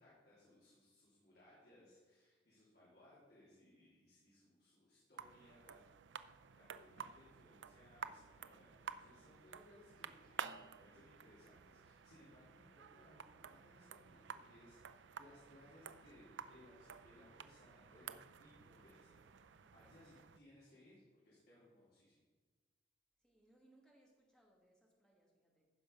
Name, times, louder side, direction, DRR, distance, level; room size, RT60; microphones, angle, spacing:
voice 1, 0.0-19.2 19.7-22.2, left 1 dB, 60° left, -8 dB, 3.4 m, -65 dB
sound 1, 5.2-20.4, right 7 dB, 85° right, 0.5 m, -53 dB
voice 2, 19.6-19.9 23.2-25.7, right 1 dB, 5° left, -1 dB, 2.0 m, -71 dB
14.5 x 5.6 x 5.3 m, 1.4 s
head